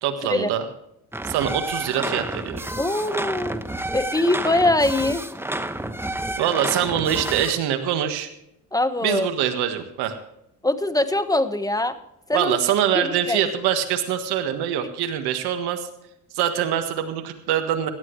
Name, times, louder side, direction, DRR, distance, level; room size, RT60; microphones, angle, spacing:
voice 1, 0.0-0.6 1.2-2.6 6.4-8.3 9.0-10.2 12.3-15.9 16.3-17.9, right 10 dB, 85° right, 7 dB, 1.7 m, -24 dB
sound 1, 1.1-7.6, right 1 dB, 5° right, 1.0 m, -30 dB
voice 2, 2.8-3.7 3.9-5.2 8.7-9.3 10.6-12.0 12.3-12.6 12.9-13.4, left 2 dB, 10° left, 10 dB, 1.4 m, -22 dB
17.0 x 12.0 x 3.2 m, 0.76 s
supercardioid pair, 65°, 38 cm